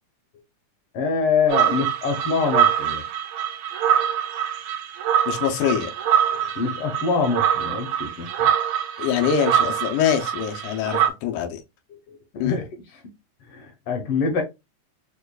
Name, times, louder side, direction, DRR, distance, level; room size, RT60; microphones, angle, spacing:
voice 1, 0.9-3.0 6.3-8.5 11.9-12.6 13.5-14.4, left 5 dB, 65° left, 1.4 m, -25 dB
sound 1, 1.5-11.1, right 10 dB, 75° right, 1.5 m, -24 dB
voice 2, 5.3-5.9 9.0-11.6 12.4-12.6, left 8 dB, 85° left, 2.2 m, -24 dB
6.5 x 2.3 x 2.3 m
omnidirectional pair, 3.5 m